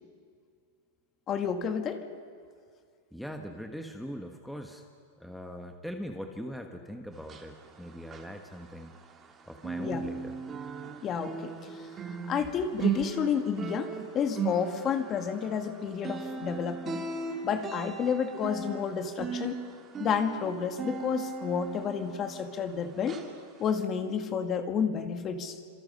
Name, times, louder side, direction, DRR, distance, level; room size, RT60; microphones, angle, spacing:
voice 1, 1.3-2.0 9.8-10.1 11.0-11.5 12.3-17.0 17.4-19.6 20.0-23.2 23.6-25.6, left 7 dB, 30° left, 7 dB, 1.9 m, -30 dB
voice 2, 3.1-4.9 5.2-8.9 9.5-10.4, equal, ahead, 4 dB, 1.3 m, -41 dB
sound 1, 7.2-9.3 9.6-22.7 23.1-23.3 23.8-23.9, right 6 dB, 20° right, 2.6 m, -37 dB
29.0 x 26.5 x 5.5 m, 2.2 s
supercardioid pair, 145°, 0 cm